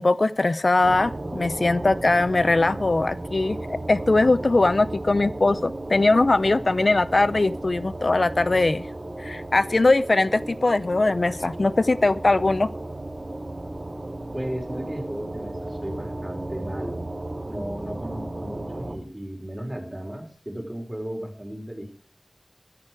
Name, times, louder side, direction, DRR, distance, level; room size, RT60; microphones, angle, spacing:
voice 1, 0.0-8.8 9.2-12.7, left 2 dB, 75° left, 16 dB, 0.6 m, -21 dB
sound 1, 0.8-19.0, right 2 dB, 55° right, 2.4 m, -35 dB
voice 2, 14.3-17.1 17.4-21.9, equal, 25° right, 4 dB, 5.3 m, -35 dB
15.0 x 13.5 x 4.9 m, 0.41 s
wide cardioid pair, 40°, 0 cm